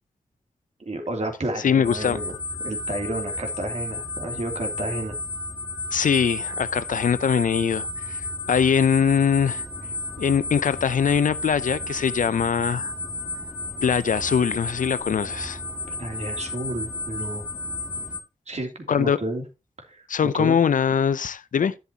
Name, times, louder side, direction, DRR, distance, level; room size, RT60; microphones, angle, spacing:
voice 1, 0.8-2.3 2.6-5.2 16.0-17.4 18.5-19.4 19.9-20.6, right 1 dB, 55° right, 2.9 m, -31 dB
voice 2, 1.6-2.2 5.9-8.2 8.5-9.6 10.2-12.9 13.8-15.6 18.9-19.2 20.1-21.7, left 7 dB, 75° left, 0.5 m, -22 dB
sound 1, 1.8-18.2, left 2 dB, 10° right, 2.0 m, -32 dB
11.0 x 8.1 x 2.9 m
cardioid pair, 40°, 13 cm